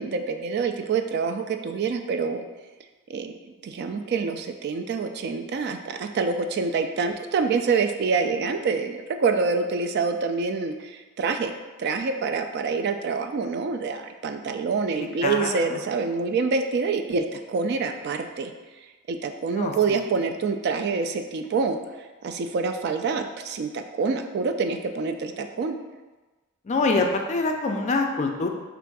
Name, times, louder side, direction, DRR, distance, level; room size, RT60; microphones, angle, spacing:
voice 1, 0.0-2.4 3.1-3.3 3.6-11.5 11.8-18.5 19.1-21.8 22.2-25.8, right 4 dB, 50° right, 6 dB, 0.3 m, -26 dB
voice 2, 15.2-15.7 19.5-19.7 26.7-28.5, left 3 dB, 35° left, 3 dB, 0.4 m, -24 dB
3.5 x 2.5 x 4.6 m, 1.2 s
head